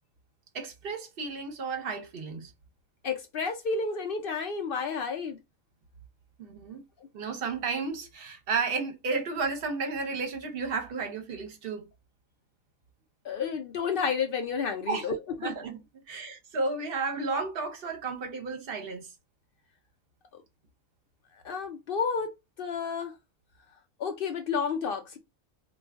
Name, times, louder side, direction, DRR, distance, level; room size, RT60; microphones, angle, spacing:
voice 1, 0.5-2.5 6.4-6.8 7.1-11.9 14.9-15.1 15.4-15.8 16.1-19.1, right 4 dB, 50° right, 0.8 m, -33 dB
voice 2, 3.0-5.4 13.2-15.2 21.4-22.3 22.6-23.1 24.0-25.2, left 5 dB, 65° left, 0.5 m, -30 dB
2.4 x 2.3 x 3.3 m
omnidirectional pair, 1.4 m